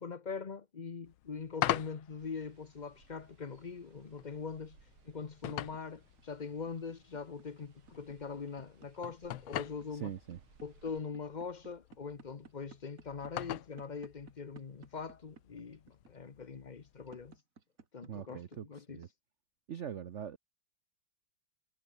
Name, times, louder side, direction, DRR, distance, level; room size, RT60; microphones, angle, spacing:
voice 1, 0.0-4.8 5.0-10.1 10.6-17.3 17.9-19.0, left 5 dB, 45° left, 0.5 m, -42 dB
sound 1, 1.0-17.4, left 14 dB, 85° left, 1.6 m, -44 dB
sound 2, 2.2-11.0, right 7 dB, 80° right, 3.0 m, -66 dB
sound 3, 5.4-19.1, right 5 dB, 40° right, 2.2 m, -57 dB
voice 2, 9.9-10.4 18.1-19.1 19.7-20.4, right 9 dB, 65° right, 0.7 m, -42 dB
omnidirectional pair, 2.3 m